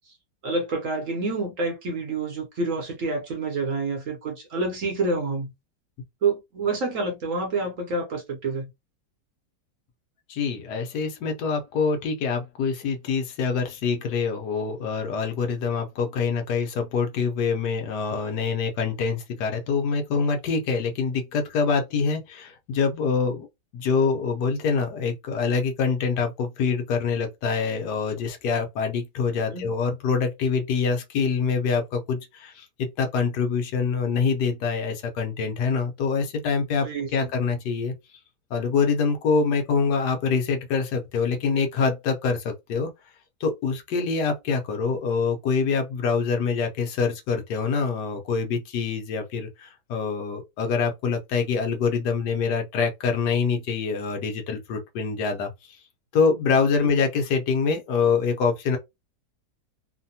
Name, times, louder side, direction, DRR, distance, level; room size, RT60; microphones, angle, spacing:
voice 1, 0.4-5.5 6.2-8.7 29.5-29.7 36.8-37.3 56.8-56.9, right 3 dB, 60° right, 1.0 m, -28 dB
voice 2, 10.3-23.5 23.7-37.9 38.5-42.9 43.4-55.5 56.1-58.8, left 5 dB, 75° left, 1.3 m, -25 dB
3.2 x 2.1 x 2.7 m
omnidirectional pair, 1.8 m